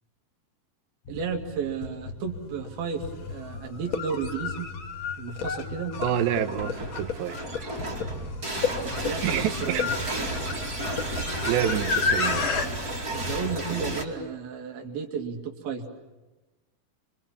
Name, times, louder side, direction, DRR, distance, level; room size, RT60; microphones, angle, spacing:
sound 1, 1.1-14.0, left 4 dB, 70° left, 10.0 m, -41 dB
voice 1, 1.1-4.7 5.2-6.0 9.0-9.9 13.1-15.9, right 6 dB, 65° right, 2 dB, 4.0 m, -33 dB
sound 2, 2.6-2.7 3.8-12.7, left 5 dB, 45° left, 1.7 m, -31 dB
voice 2, 6.0-7.4 9.2-9.9 11.5-12.5, right 10 dB, 90° right, 8 dB, 3.6 m, -27 dB
sound 3, 6.2-14.0, right 2 dB, 25° right, 2.7 m, -33 dB
29.5 x 24.0 x 7.4 m, 1.1 s
omnidirectional pair, 4.8 m